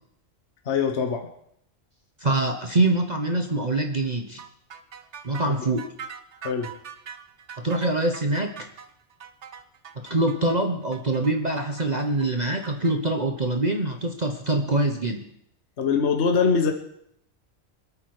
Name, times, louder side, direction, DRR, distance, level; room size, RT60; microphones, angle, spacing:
voice 1, 0.7-1.3 6.4-6.7 15.8-16.7, left 5 dB, 55° left, 4 dB, 1.4 m, -22 dB
voice 2, 2.2-4.4 5.2-5.9 7.6-8.7 10.0-15.2, right 2 dB, 35° right, 4 dB, 1.1 m, -24 dB
sound 1, 4.4-12.9, right 7 dB, 60° right, 1.3 m, -42 dB
25.5 x 8.9 x 4.9 m, 0.71 s
omnidirectional pair, 1.4 m